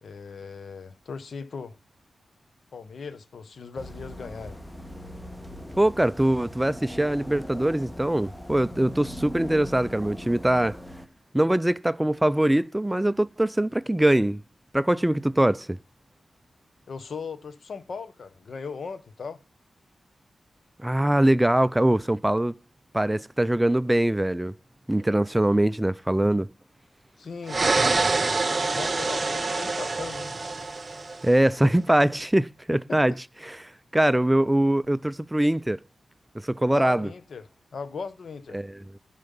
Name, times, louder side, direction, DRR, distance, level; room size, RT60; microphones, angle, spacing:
voice 1, 0.0-1.8 2.7-4.6 16.9-19.4 27.2-27.6 28.7-30.3 32.9-33.0 36.7-37.5 37.7-38.6, left 5 dB, 70° left, 1.0 m, -38 dB
sound 1, 3.8-11.1, equal, 15° left, 1.3 m, -40 dB
voice 2, 5.8-10.8 11.3-14.4 14.7-15.8 20.8-22.5 22.9-24.5 24.9-26.5 31.2-33.1 33.4-35.8 36.3-37.1 38.5-39.0, right 1 dB, 10° right, 0.4 m, -23 dB
sound 2, 27.5-31.4, right 3 dB, 40° right, 0.9 m, -26 dB
11.5 x 5.6 x 5.4 m
cardioid pair, 50°, 0 cm